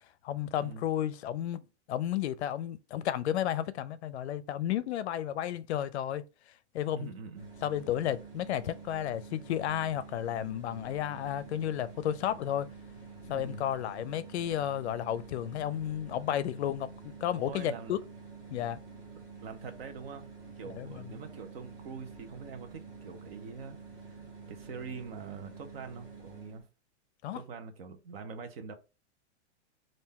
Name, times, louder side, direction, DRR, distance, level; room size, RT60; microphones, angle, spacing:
voice 1, 0.2-1.6 1.9-6.3 6.7-7.1 7.6-12.7 13.3-16.9 17.2-18.0 18.5-18.8 20.6-21.2 27.2-27.4, left 11 dB, 70° left, 0.5 m, -32 dB
voice 2, 6.9-7.5 13.3-13.7 17.3-17.9 19.4-20.2 20.6-23.8 24.0-24.2 24.5-26.7 27.3-28.7, right 5 dB, 55° right, 0.8 m, -44 dB
sound 1, 7.3-26.6, right 4 dB, 10° right, 0.5 m, -49 dB
3.7 x 2.6 x 4.1 m
supercardioid pair, 165°, 35 cm